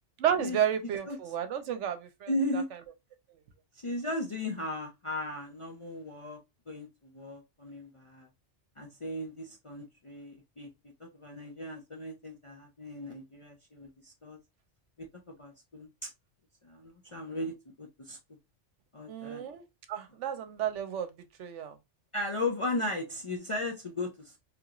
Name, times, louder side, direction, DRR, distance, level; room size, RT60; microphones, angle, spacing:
voice 1, 0.2-2.6 19.1-21.1 21.4-21.8, right 9 dB, 80° right, 1.0 m, -32 dB
voice 2, 0.8-1.2 2.3-2.7 3.7-6.4 6.7-8.3 8.8-10.7 11.0-14.4 15.0-16.1 16.6-17.5 17.8-18.2 18.9-19.4 22.1-24.4, left 1 dB, 40° left, 0.4 m, -36 dB
3.3 x 3.0 x 2.4 m
omnidirectional pair, 1.2 m